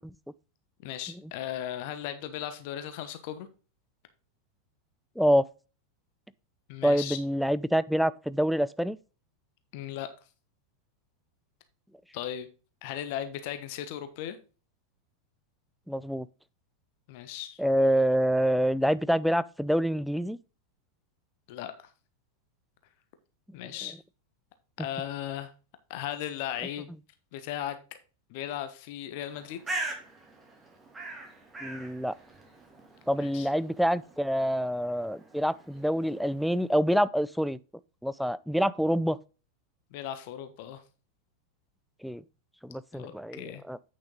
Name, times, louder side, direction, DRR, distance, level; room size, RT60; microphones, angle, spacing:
voice 1, 0.8-3.5 6.7-7.2 9.7-10.1 12.1-12.5 12.8-14.4 17.1-17.6 21.5-21.7 23.5-24.0 24.8-25.5 25.9-26.9 27.3-27.8 28.3-29.6 33.1-33.5 39.9-40.8 42.9-43.6, left 11 dB, 45° left, 1.1 m, -36 dB
voice 2, 5.2-5.5 6.8-9.0 15.9-16.3 17.6-20.4 31.6-32.1 33.1-37.6 38.0-39.2 42.0-42.2 42.6-43.8, equal, ahead, 0.4 m, -26 dB
Bird, 29.2-36.8, right 2 dB, 15° right, 2.6 m, -42 dB
8.8 x 6.4 x 3.8 m
figure-of-eight pair, 90°, 0 cm